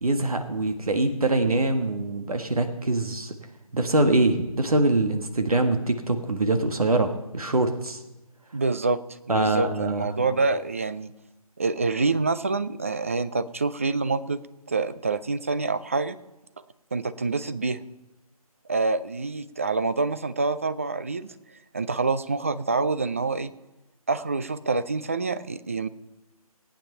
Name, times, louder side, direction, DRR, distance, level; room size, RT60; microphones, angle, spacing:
voice 1, 0.0-3.3 3.7-8.0 9.3-10.1, right 2 dB, 70° right, 6 dB, 1.5 m, -24 dB
voice 2, 8.5-9.0 9.3-11.1 11.6-14.4 14.7-16.2 16.9-17.8 18.7-21.3 21.7-23.5 24.1-25.9, right 3 dB, 25° right, 13 dB, 0.4 m, -26 dB
19.0 x 9.1 x 5.6 m, 1.0 s
figure-of-eight pair, 150°, 19 cm